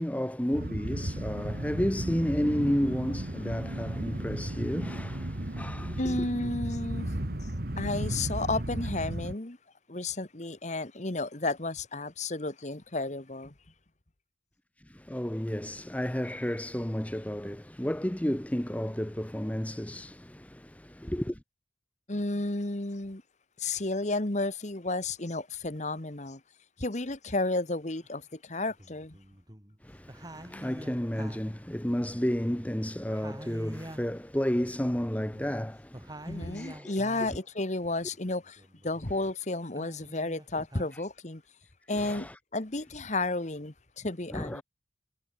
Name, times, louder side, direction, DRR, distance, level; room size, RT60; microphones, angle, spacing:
voice 1, 0.0-6.2 14.8-21.4 29.8-36.9 40.5-40.6 40.9-41.0 41.9-42.4 44.3-44.6, equal, 10° left, 0.8 m, -32 dB
sound 1, 0.5-9.3, right 1 dB, 55° right, 2.0 m, -34 dB
voice 2, 6.0-7.4 7.8-9.6 9.9-13.5 22.1-23.2 23.6-26.4 26.8-29.2 36.3-41.4 41.9-44.6, left 2 dB, 40° left, 1.5 m, -32 dB
sound 2, 28.0-28.1 28.7-29.8 30.1-32.8 33.1-37.5 37.9-39.3 39.6-40.9, right 1 dB, 20° right, 3.4 m, -47 dB
head